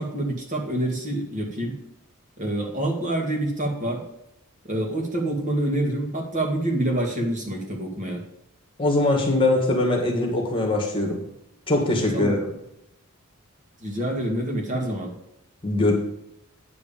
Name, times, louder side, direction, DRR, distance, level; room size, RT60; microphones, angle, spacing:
voice 1, 0.0-1.8 2.4-4.0 4.7-8.2 12.1-12.4 13.8-15.1, right 1 dB, 35° right, 0 dB, 2.1 m, -27 dB
voice 2, 8.8-11.2 11.7-12.5 15.6-15.9, left 2 dB, 25° left, 1 dB, 2.1 m, -22 dB
9.6 x 4.9 x 7.2 m, 0.80 s
head